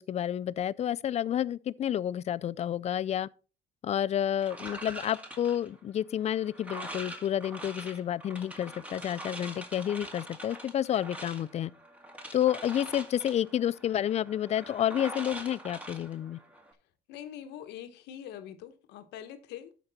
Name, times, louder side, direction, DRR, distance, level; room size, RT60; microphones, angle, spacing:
voice 1, 0.0-3.3 3.8-11.7 12.3-16.4, left 10 dB, 40° left, 0.4 m, -30 dB
sound 1, 4.4-16.7, right 1 dB, 10° right, 2.0 m, -44 dB
voice 2, 17.1-19.8, left 10 dB, 85° left, 1.2 m, -44 dB
12.5 x 5.2 x 4.1 m
cardioid pair, 110°, 17 cm